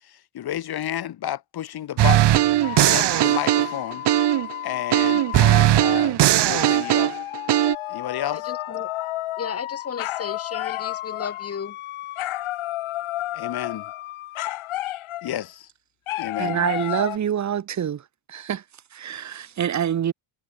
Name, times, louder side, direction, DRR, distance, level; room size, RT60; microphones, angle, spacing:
voice 1, 0.3-2.4 2.8-4.0 4.6-7.1 7.9-8.5 13.3-13.9 15.2-15.7 16.2-16.7, left 11 dB, 45° left, 1.9 m, -31 dB
sound 1, 2.0-4.5 4.9-7.7, right 14 dB, 55° right, 1.2 m, -18 dB
sound 2, 2.6-5.7 6.5-15.4 16.1-17.2, left 15 dB, 75° left, 2.4 m, -32 dB
voice 2, 8.3-8.9 9.4-11.8, left 6 dB, 30° left, 2.8 m, -34 dB
voice 3, 16.4-18.0 18.3-18.6 18.9-20.1, right 9 dB, 35° right, 1.2 m, -26 dB
cardioid pair, 165°, 50 cm